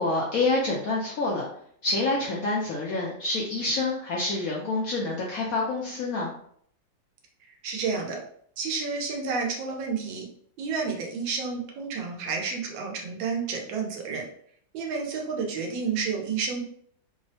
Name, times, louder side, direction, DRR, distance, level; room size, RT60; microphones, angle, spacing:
voice 1, 0.0-1.5 1.8-6.3, left 2 dB, 75° left, -3 dB, 0.8 m, -27 dB
voice 2, 7.6-8.2 8.6-10.3 10.6-14.2 14.7-16.6, right 5 dB, 85° right, 1 dB, 1.4 m, -30 dB
3.5 x 2.0 x 2.6 m, 0.63 s
omnidirectional pair, 2.0 m